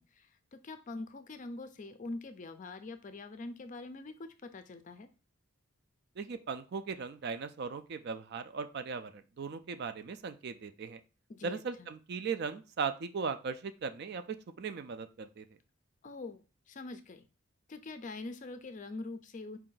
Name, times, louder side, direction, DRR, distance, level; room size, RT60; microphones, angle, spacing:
voice 1, 0.0-5.1 11.3-11.9 16.0-17.3 17.7-19.6, left 2 dB, 35° left, 9 dB, 0.4 m, -44 dB
voice 2, 6.2-11.0 11.4-15.4, right 5 dB, 50° right, 11 dB, 0.4 m, -38 dB
4.6 x 2.5 x 3.8 m, 0.32 s
head